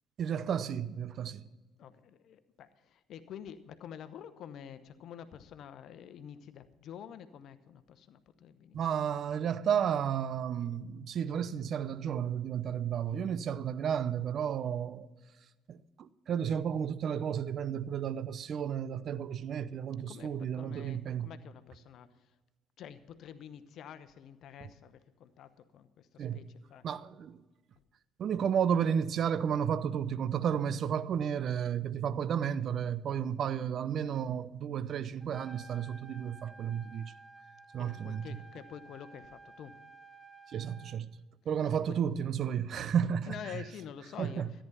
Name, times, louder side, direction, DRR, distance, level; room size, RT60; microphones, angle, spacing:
voice 1, 0.2-1.4 8.7-15.1 15.7-21.3 26.2-26.4 26.8-27.4 28.2-37.1 37.7-38.4 40.5-41.1 41.5-43.7 44.2-44.5, right 8 dB, 55° right, 0.6 m, -32 dB
voice 2, 1.8-8.8 20.1-22.1 22.8-26.4 26.7-26.8 37.8-39.8 43.3-44.4, left 9 dB, 60° left, 0.9 m, -48 dB
Trumpet, 35.2-41.0, right 3 dB, 15° right, 1.7 m, -53 dB
14.0 x 10.0 x 5.6 m
hypercardioid pair, 55°, 0 cm